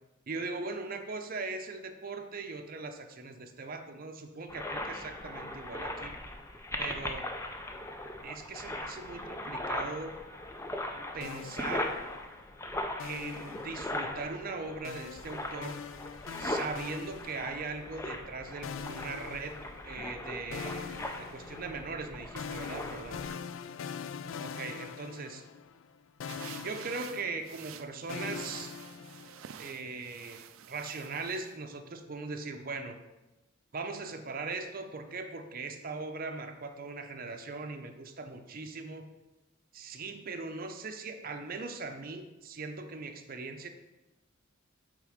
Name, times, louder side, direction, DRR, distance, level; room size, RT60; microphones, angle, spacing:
voice 1, 0.3-6.2 6.8-7.3 8.2-10.2 11.1-12.0 13.0-15.8 16.4-23.2 24.4-25.4 26.6-28.7 29.6-30.4 30.7-33.0 33.7-39.1 39.7-43.7, right 3 dB, 45° right, 6 dB, 0.6 m, -40 dB
sound 1, 4.5-23.4, left 1 dB, 15° left, 0.5 m, -39 dB
sound 2, 11.2-12.4 13.0-14.2 14.8-17.9 18.6-20.2 20.5-25.9 26.2-29.5, left 6 dB, 70° left, 0.3 m, -43 dB
sound 3, 26.3-31.6, right 9 dB, 85° right, 0.4 m, -49 dB
8.3 x 3.7 x 5.0 m, 1.0 s
head